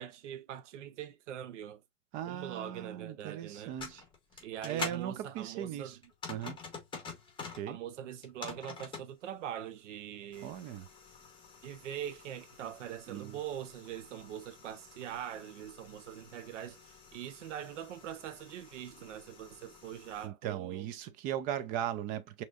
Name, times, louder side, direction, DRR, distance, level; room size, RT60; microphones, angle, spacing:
voice 1, 0.0-1.8 2.3-3.8 4.4-5.9 7.7-10.5 11.6-20.9, right 10 dB, 60° right, 0.9 m, -43 dB
voice 2, 2.1-4.0 4.6-6.0 6.3-6.6 7.5-7.8 10.4-10.9 13.1-13.4 20.2-22.4, right 10 dB, 20° right, 0.5 m, -38 dB
sound 1, 3.5-5.0 6.0-7.7 8.1-9.1 10.3-20.3, left 4 dB, 10° left, 1.9 m, -48 dB
6.1 x 3.1 x 2.4 m
hypercardioid pair, 120°, 40 cm